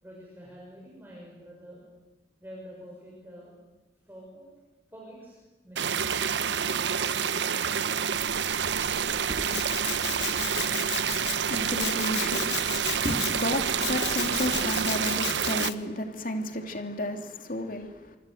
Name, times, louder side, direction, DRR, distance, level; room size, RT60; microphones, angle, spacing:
voice 1, 0.0-1.8 2.4-3.5 4.1-4.5 4.9-5.4 5.6-6.0 6.6-8.2, equal, 10° right, 6.5 m, -48 dB
sound 1, 5.8-15.7, right 7 dB, 85° right, 0.8 m, -28 dB
Liquid, 8.1-14.9, equal, 50° right, 4.0 m, -42 dB
Domestic sounds home sounds, 9.5-11.4 11.8-13.4 13.8-15.7, left 12 dB, 80° left, 1.2 m, -35 dB
voice 2, 11.0-18.2, left 1 dB, 50° left, 2.9 m, -33 dB
26.0 x 25.5 x 8.0 m
head